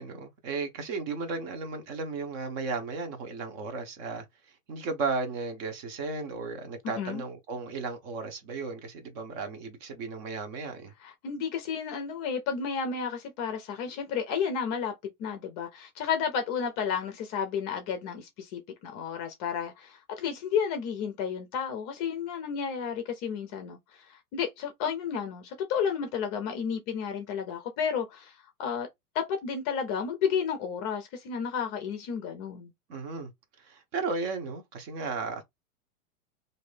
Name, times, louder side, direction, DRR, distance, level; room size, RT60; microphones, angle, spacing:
voice 1, 0.0-4.2 4.7-10.9 32.9-33.3 33.6-35.4, right 4 dB, 40° right, 0.9 m, -35 dB
voice 2, 6.8-7.2 11.0-14.9 15.2-28.9 29.1-32.7, left 7 dB, 30° left, 0.5 m, -32 dB
3.1 x 2.7 x 3.2 m
hypercardioid pair, 140°, 45 cm